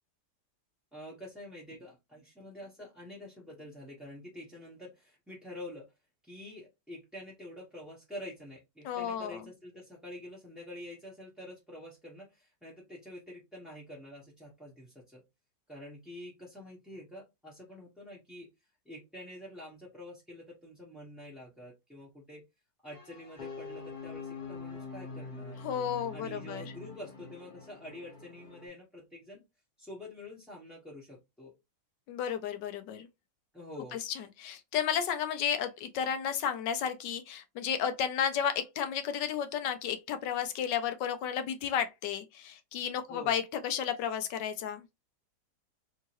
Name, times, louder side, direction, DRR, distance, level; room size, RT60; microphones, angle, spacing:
voice 1, 0.9-5.9 6.2-15.2 15.7-18.5 18.8-22.4 22.8-25.6 26.1-29.4 29.8-31.6 33.5-34.0 43.1-43.3, left 1 dB, ahead, 0.7 m, -47 dB
voice 2, 8.8-9.4 25.6-26.7 32.1-33.1 34.4-44.8, left 8 dB, 80° left, 1.2 m, -32 dB
sound 1, 22.9-28.7, left 4 dB, 35° left, 0.9 m, -44 dB
3.7 x 2.8 x 2.9 m
omnidirectional pair, 1.9 m